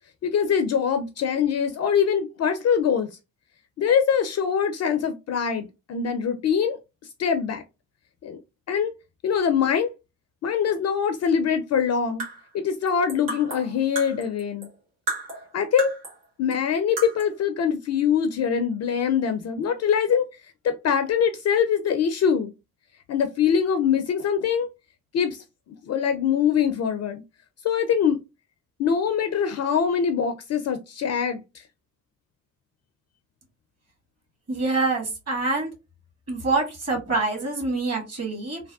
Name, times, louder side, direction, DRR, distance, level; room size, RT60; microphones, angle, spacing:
voice 1, 0.2-3.1 3.8-6.8 7.2-7.6 8.2-8.4 8.7-8.9 9.2-9.9 10.4-12.2 12.5-14.7 15.5-15.9 16.4-20.2 20.6-22.5 23.1-24.7 25.1-25.4 25.8-27.2 27.6-28.2 28.8-31.4, left 7 dB, 40° left, 0.4 m, -23 dB
sound 1, 12.0-14.8 15.1-16.2 16.5-16.6 17.0-17.4, right 2 dB, 75° right, 1.4 m, -34 dB
voice 2, 34.5-35.7 36.3-38.6, right 3 dB, 35° right, 1.6 m, -25 dB
3.2 x 2.2 x 2.3 m
hypercardioid pair, 45°, 43 cm